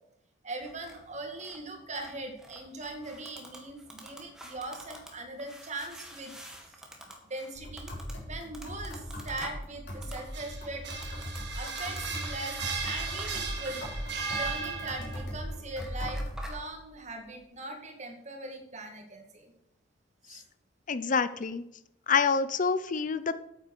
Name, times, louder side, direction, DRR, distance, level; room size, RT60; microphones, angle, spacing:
voice 1, 0.4-6.3 6.7-6.8 7.2-7.9 8.3-10.8 11.5-13.9 14.3-19.5 20.3-20.4, right 2 dB, 40° right, 4 dB, 2.2 m, -40 dB
sound 1, 0.6-16.6, equal, 5° right, 2.1 m, -49 dB
sound 2, 7.5-16.5, equal, 65° left, 4.3 m, -39 dB
sound 3, 10.1-15.3, right 5 dB, 70° right, 2.1 m, -36 dB
voice 2, 20.9-21.6 22.1-23.3, left 5 dB, 45° left, 13 dB, 0.6 m, -27 dB
9.3 x 8.8 x 6.6 m, 0.80 s
head